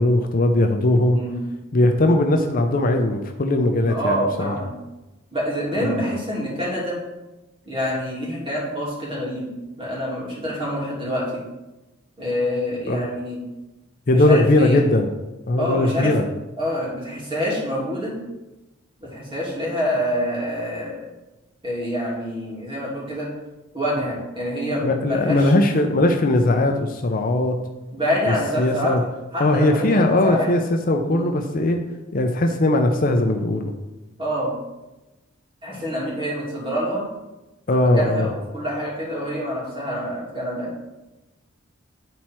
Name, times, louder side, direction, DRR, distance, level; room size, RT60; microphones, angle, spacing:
voice 1, 0.0-1.2 1.7-4.6 5.8-6.0 12.9-13.1 14.1-15.1 15.5-16.2 24.8-27.6 28.3-29.0 29.4-30.6 30.9-31.8 32.1-33.7 37.7-38.3, left 1 dB, 45° left, 4 dB, 0.6 m, -19 dB
voice 2, 3.8-4.8 5.3-7.0 7.6-9.5 9.8-11.4 12.2-13.4 14.1-14.8 15.6-16.1 16.6-18.1 19.0-21.1 21.6-23.3 23.7-25.5 27.9-28.9 29.3-30.5 31.1-31.3 34.2-34.5 35.6-37.1 37.7-40.7, equal, 25° right, -5 dB, 2.7 m, -26 dB
9.3 x 4.3 x 4.5 m, 1.0 s
head